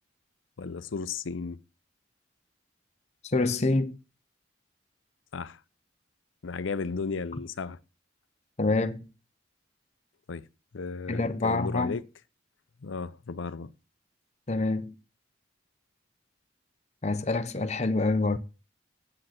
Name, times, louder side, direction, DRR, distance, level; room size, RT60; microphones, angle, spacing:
voice 1, 0.6-1.6 5.3-5.6 6.4-7.8 10.3-10.5 10.7-12.0 12.8-13.7, left 4 dB, 85° left, 0.6 m, -34 dB
voice 2, 3.2-4.0 8.6-9.1 11.1-12.0 14.5-14.9 17.0-18.4, left 2 dB, 35° left, 0.7 m, -26 dB
7.7 x 7.7 x 5.8 m
head